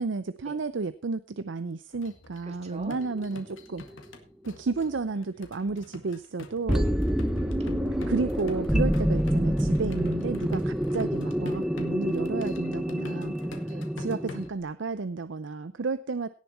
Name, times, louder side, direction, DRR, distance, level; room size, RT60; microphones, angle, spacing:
voice 1, 0.0-3.8 4.5-6.9 8.1-13.3 14.0-16.3, right 4 dB, 65° right, 14 dB, 0.6 m, -32 dB
sound 1, 1.9-14.6, left 2 dB, 75° left, 1.9 m, -47 dB
voice 2, 2.5-3.0 6.7-8.2 13.7-13.9, equal, 35° right, 5 dB, 2.2 m, -39 dB
sound 2, 3.0-3.6 4.1-4.2 6.7-14.5, equal, 5° right, 0.6 m, -27 dB
17.5 x 7.1 x 4.3 m, 0.36 s
head